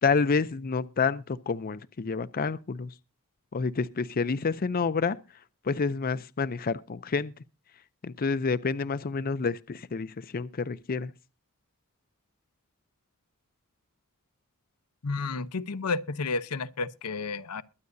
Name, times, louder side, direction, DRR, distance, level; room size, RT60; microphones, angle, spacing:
voice 1, 0.0-2.9 3.5-5.2 5.7-7.3 8.0-11.1, left 5 dB, 40° left, 0.5 m, -28 dB
voice 2, 15.0-17.6, left 4 dB, 90° left, 0.8 m, -31 dB
22.0 x 9.5 x 2.7 m
head